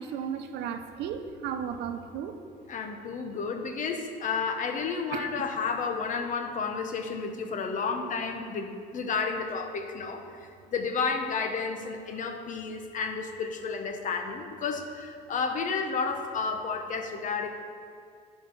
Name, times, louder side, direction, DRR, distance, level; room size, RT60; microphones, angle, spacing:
voice 1, 0.0-2.4 5.1-5.3, right 8 dB, 90° right, 7 dB, 0.7 m, -34 dB
voice 2, 2.7-10.2 10.7-17.5, left 5 dB, 50° left, 5 dB, 1.0 m, -31 dB
12.0 x 5.0 x 5.4 m, 2.2 s
cardioid pair, 110°, 17 cm